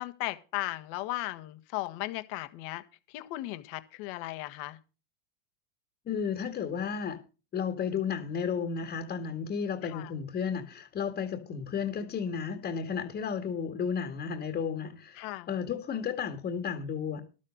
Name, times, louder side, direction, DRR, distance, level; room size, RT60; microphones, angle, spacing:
voice 1, 0.0-2.8 3.1-4.8 9.8-10.1 15.2-15.5, left 18 dB, 55° left, 1.6 m, -36 dB
voice 2, 6.1-7.2 7.5-17.2, left 7 dB, 30° left, 1.9 m, -33 dB
12.0 x 7.6 x 6.4 m
supercardioid pair, 120°, 33 cm